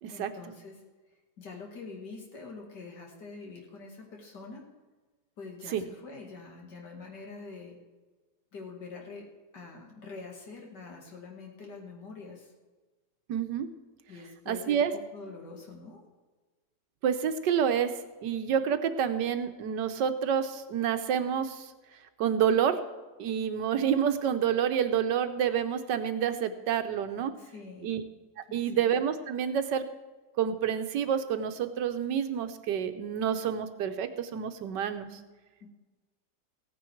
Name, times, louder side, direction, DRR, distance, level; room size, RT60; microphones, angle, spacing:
voice 1, 0.1-0.8 1.4-4.6 5.4-7.8 8.5-9.3 9.5-12.5 14.1-16.0 27.4-27.9 28.5-28.8 35.6-35.7, left 4 dB, 75° left, 0 dB, 2.7 m, -45 dB
voice 2, 13.3-13.7 14.5-14.9 17.0-17.9 18.2-21.7 22.2-22.8 23.2-27.3 27.8-28.0 28.5-29.8 30.4-35.2, right 8 dB, 85° right, 9 dB, 1.5 m, -28 dB
15.5 x 9.4 x 4.6 m, 1.3 s
omnidirectional pair, 1.8 m